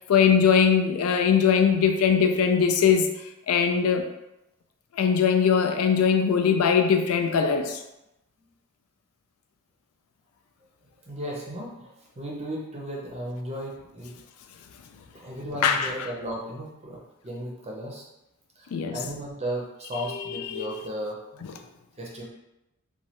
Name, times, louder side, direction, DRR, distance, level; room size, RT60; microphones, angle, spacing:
voice 1, 0.0-3.1 3.5-4.1 5.0-7.8 15.6-15.9 18.7-18.9 20.1-20.7 21.4-21.5, left 6 dB, 85° left, 5 dB, 0.4 m, -21 dB
voice 2, 11.1-14.2 15.1-18.0 18.6-21.5 22.0-22.2, equal, 30° right, -2 dB, 0.6 m, -35 dB
3.1 x 2.2 x 2.8 m, 0.91 s
head